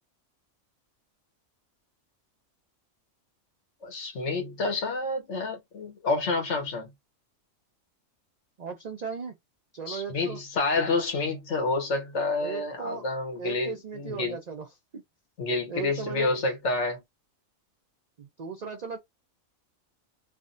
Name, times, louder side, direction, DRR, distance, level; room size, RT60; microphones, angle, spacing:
voice 1, 3.8-6.9 9.9-14.4 15.4-17.0, left 3 dB, 65° left, 1.2 m, -29 dB
voice 2, 8.6-9.4 9.7-10.4 12.4-13.1 13.4-15.0 15.7-16.3 18.2-19.0, right 5 dB, 65° right, 0.4 m, -37 dB
3.4 x 2.1 x 2.4 m
omnidirectional pair, 1.4 m